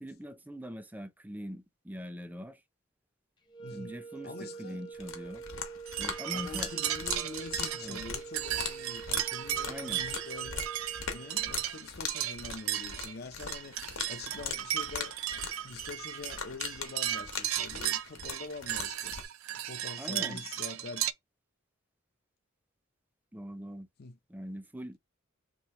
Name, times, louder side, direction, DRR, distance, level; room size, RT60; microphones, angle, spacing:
voice 1, 0.0-2.6 3.7-5.4 6.0-6.7 7.8-8.0 9.7-10.1 20.0-20.5 23.3-23.9 24.3-25.0, equal, 10° right, 0.4 m, -42 dB
sound 1, 3.5-11.7, right 5 dB, 20° left, 0.9 m, -46 dB
voice 2, 3.6-4.0 4.2-4.8 6.3-10.7 11.1-13.8 14.1-15.2 15.6-19.1 19.6-21.1 24.0-24.2, left 3 dB, 50° left, 0.6 m, -45 dB
sound 2, 4.9-19.3, left 6 dB, 70° left, 1.1 m, -41 dB
sound 3, 5.9-21.1, right 12 dB, 90° right, 0.4 m, -35 dB
3.2 x 3.0 x 4.2 m
head